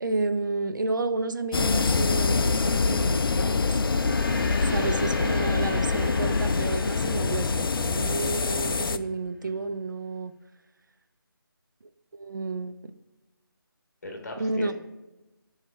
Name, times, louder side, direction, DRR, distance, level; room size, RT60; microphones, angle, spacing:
voice 1, 0.0-3.7 4.7-10.3 12.1-12.9 14.4-14.7, right 3 dB, 55° right, 10 dB, 0.4 m, -31 dB
sound 1, 1.5-9.0, left 4 dB, 75° left, 0.4 m, -25 dB
Gong, 3.7-8.4, left 2 dB, 15° left, 1.7 m, -38 dB
voice 2, 14.0-14.7, left 1 dB, 45° left, 2 dB, 1.3 m, -40 dB
7.5 x 3.2 x 4.6 m, 1.1 s
figure-of-eight pair, 165°, 12 cm